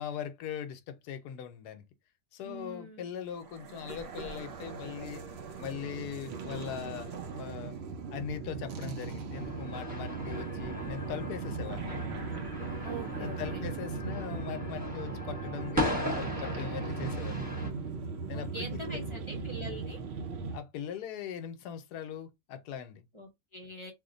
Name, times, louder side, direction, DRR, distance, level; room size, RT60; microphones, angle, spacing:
voice 1, 0.0-1.8 2.3-5.2 5.6-7.8 8.1-12.1 13.2-17.5 18.3-19.0 20.5-23.1, left 8 dB, 75° left, 1.1 m, -40 dB
voice 2, 2.4-3.1 12.8-13.7 18.3-20.0 23.1-23.9, right 1 dB, 45° left, 0.3 m, -43 dB
sound 1, 3.4-20.6, right 4 dB, 65° right, 0.6 m, -38 dB
sound 2, 9.3-17.7, left 1 dB, 5° right, 0.9 m, -38 dB
2.9 x 2.1 x 3.7 m
omnidirectional pair, 1.7 m